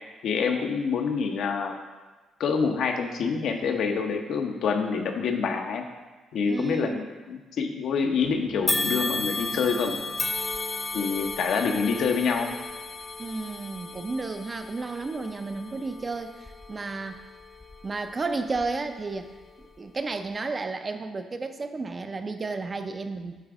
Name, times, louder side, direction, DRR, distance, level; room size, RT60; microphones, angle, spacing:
voice 1, 0.2-1.8 2.4-5.8 6.3-10.0 10.9-12.6, left 5 dB, 70° left, 4 dB, 0.8 m, -26 dB
voice 2, 6.5-7.1 13.2-17.2 17.8-19.3 19.8-23.4, right 3 dB, 30° right, 7 dB, 0.5 m, -32 dB
sound 1, 8.2-12.5, right 3 dB, 65° right, 1.3 m, -44 dB
sound 2, 8.7-18.0 18.5-18.7 19.6-19.7, left 3 dB, 20° left, 0.7 m, -34 dB
8.3 x 3.4 x 4.9 m, 1.3 s
cardioid pair, 90°, 0 cm